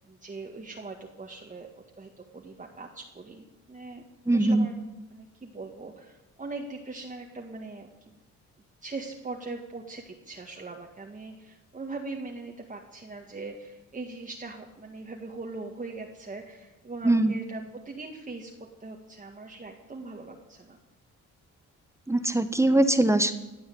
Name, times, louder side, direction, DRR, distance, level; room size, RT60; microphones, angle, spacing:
voice 1, 0.1-1.7 2.0-4.0 4.3-4.7 5.1-8.1 8.8-18.5 18.8-20.8, right 3 dB, 25° right, 1 dB, 1.9 m, -41 dB
voice 2, 4.3-4.7 17.0-17.4 22.1-23.3, right 1 dB, 10° right, 10 dB, 1.1 m, -22 dB
16.5 x 8.8 x 8.6 m, 0.99 s
cardioid pair, 90°, 30 cm